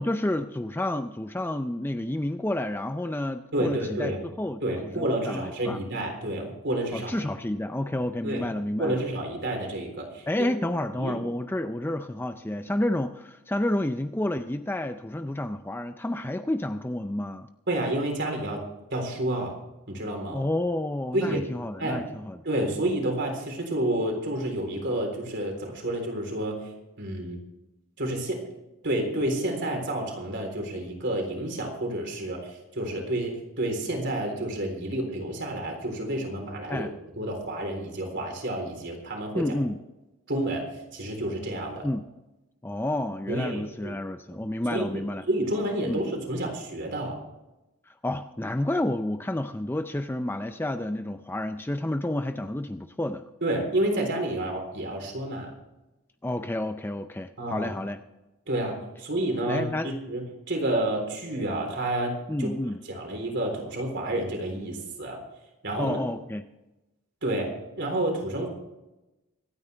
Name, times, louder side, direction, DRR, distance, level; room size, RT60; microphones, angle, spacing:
voice 1, 0.0-5.8 6.9-9.0 10.3-17.5 20.3-22.4 36.7-36.9 39.3-39.8 41.8-42.0 42.6-45.2 45.9-46.0 47.9-53.2 56.2-58.0 59.5-59.9 62.3-62.8 65.8-66.4, left 1 dB, 10° left, 8 dB, 0.4 m, -30 dB
voice 2, 3.5-4.2 4.6-7.1 8.2-8.5 8.8-10.5 11.0-11.2 17.7-18.6 18.9-19.6 19.9-20.4 21.1-21.4 21.8-22.0 22.4-26.6 27.0-27.4 28.0-28.5 28.8-36.9 37.2-39.5 40.3-41.9 43.3-43.9 44.3-44.4 44.7-44.8 45.3-47.2 53.4-55.5 57.4-57.7 58.5-62.5 62.9-65.2 65.6-66.0 67.2-67.5 67.8-68.5, right 1 dB, 50° right, 2 dB, 3.9 m, -29 dB
25.0 x 9.5 x 3.4 m, 0.99 s
head